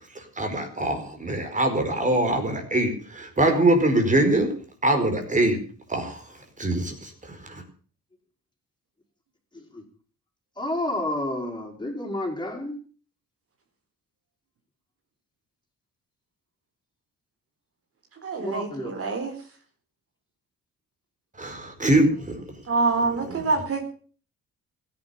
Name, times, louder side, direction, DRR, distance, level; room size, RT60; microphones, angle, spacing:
voice 1, 0.1-4.5 4.8-5.6 5.9-6.2 6.6-7.6 21.4-22.4, right 1 dB, 25° right, 5 dB, 4.8 m, -23 dB
voice 2, 9.5-9.8 10.6-12.8 18.4-18.9, left 1 dB, 15° left, 0 dB, 5.5 m, -30 dB
voice 3, 18.2-19.3 22.7-23.8, right 3 dB, 50° right, 4 dB, 4.1 m, -26 dB
16.0 x 11.0 x 7.2 m, 0.42 s
cardioid pair, 90°, 30 cm